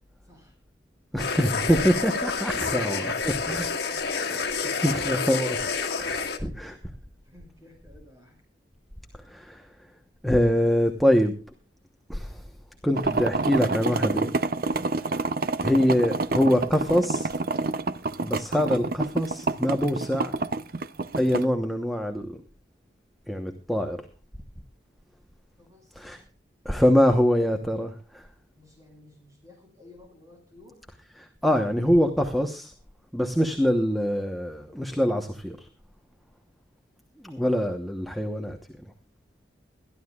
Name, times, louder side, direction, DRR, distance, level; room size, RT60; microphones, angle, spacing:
voice 1, 1.1-5.7 6.0-6.7 9.3-9.7 10.2-11.4 12.1-12.4 12.8-14.3 15.6-17.3 18.2-20.3 21.2-22.4 23.3-24.0 25.9-26.2 26.6-28.2 31.2-32.7 33.1-35.7 37.2-38.6, equal, ahead, 4 dB, 1.0 m, -24 dB
sound 1, 1.2-6.4, left 5 dB, 60° left, 1.8 m, -29 dB
voice 2, 3.7-4.1 6.4-6.7 7.2-8.4 25.6-26.1 28.5-30.8, left 1 dB, 20° right, 2 dB, 5.7 m, -53 dB
sound 2, 12.9-21.4, right 3 dB, 50° right, 0.6 m, -28 dB
22.0 x 13.0 x 2.4 m, 0.35 s
head